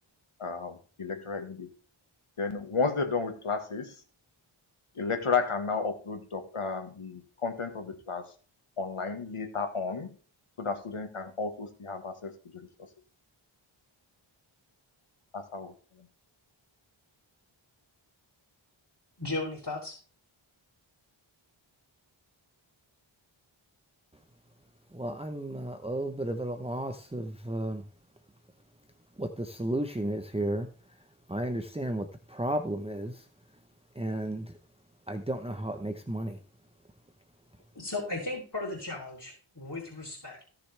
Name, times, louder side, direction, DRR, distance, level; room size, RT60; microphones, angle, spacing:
voice 1, 0.4-1.7 2.4-4.0 5.0-8.3 8.8-10.1 10.6-12.7 15.3-16.1, left 4 dB, 90° left, 7 dB, 1.7 m, -33 dB
voice 2, 19.2-20.0 37.8-40.4, left 2 dB, 40° left, -5 dB, 3.6 m, -36 dB
voice 3, 24.9-27.8 29.2-30.7 31.3-33.2 34.0-34.5 35.1-36.4, right 1 dB, 10° right, 6 dB, 1.0 m, -33 dB
16.5 x 6.7 x 3.4 m, 0.38 s
wide cardioid pair, 40°, 49 cm